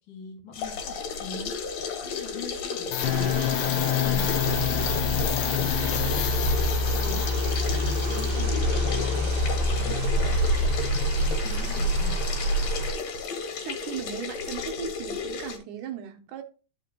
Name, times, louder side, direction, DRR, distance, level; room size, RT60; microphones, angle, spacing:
voice 1, 0.1-1.5 2.0-5.8 6.1-7.3 7.7-9.3 9.8-10.3 10.6-12.2, left 5 dB, 40° left, 2.5 m, -42 dB
sound 1, 0.5-15.6, left 5 dB, 65° left, 2.2 m, -33 dB
sound 2, 2.9-11.4, left 6 dB, 80° left, 2.1 m, -28 dB
sound 3, 3.0-12.9, right 2 dB, 60° right, 2.4 m, -28 dB
voice 2, 13.6-16.4, right 9 dB, 75° right, 2.2 m, -37 dB
11.0 x 5.1 x 3.0 m
omnidirectional pair, 3.8 m